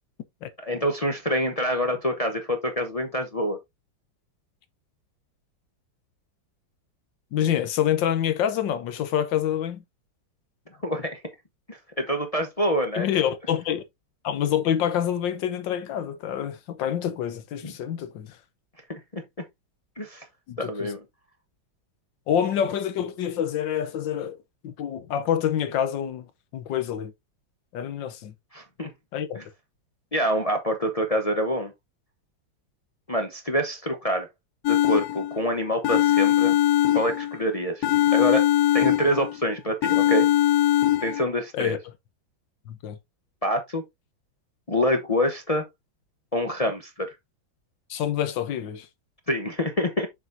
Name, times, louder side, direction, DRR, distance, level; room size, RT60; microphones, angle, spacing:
voice 1, 0.6-3.6 10.8-11.2 11.7-13.1 17.6-17.7 18.9-19.2 20.0-20.3 20.6-21.0 28.5-28.9 29.3-29.4 30.1-31.7 33.1-34.3 34.7-36.6 36.9-37.9 38.1-38.4 38.7-40.3 41.0-41.8 43.4-43.8 44.7-45.7 46.3-47.1 49.3-50.1, equal, 40° left, 0.5 m, -26 dB
voice 2, 7.3-9.8 12.9-13.8 14.2-18.3 20.5-20.9 22.3-24.4 24.6-26.3 26.5-27.1 27.7-28.3 29.1-29.4 41.5-41.8 42.7-43.0 47.9-48.9, left 9 dB, 70° left, 1.5 m, -27 dB
sound 1, 34.6-35.4 35.8-37.4 37.8-39.4 39.8-41.2, left 12 dB, 90° left, 0.8 m, -21 dB
7.2 x 5.8 x 2.6 m
omnidirectional pair, 2.2 m